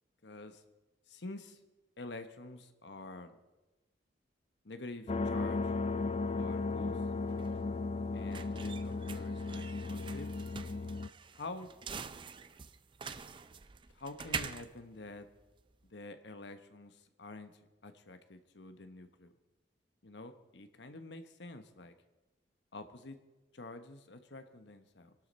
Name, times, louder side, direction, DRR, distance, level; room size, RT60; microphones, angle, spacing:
voice 1, 0.2-0.6 1.1-1.6 2.0-3.4 4.6-5.8 6.3-7.0 8.1-10.3 11.3-11.7 13.9-15.3 15.9-19.3 20.0-21.9 22.7-23.2 23.5-25.1, left 2 dB, 75° left, 8 dB, 1.0 m, -47 dB
sound 1, 5.1-11.1, left 3 dB, 35° left, 0.4 m, -35 dB
sound 2, 6.8-15.9, right 5 dB, 25° right, 0.5 m, -45 dB
24.5 x 12.0 x 4.2 m, 1.1 s
head